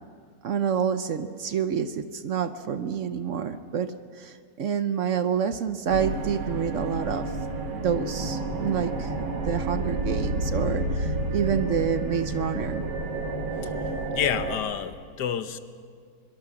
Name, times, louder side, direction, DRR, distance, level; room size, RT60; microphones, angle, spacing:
voice 1, 0.4-7.3 7.7-12.8, right 7 dB, 55° right, 10 dB, 1.0 m, -28 dB
sound 1, 5.9-14.6, right 2 dB, 85° right, 2.3 m, -30 dB
voice 2, 13.6-15.6, left 9 dB, 85° left, 11 dB, 1.5 m, -30 dB
23.5 x 22.5 x 6.0 m, 2.1 s
omnidirectional pair, 1.8 m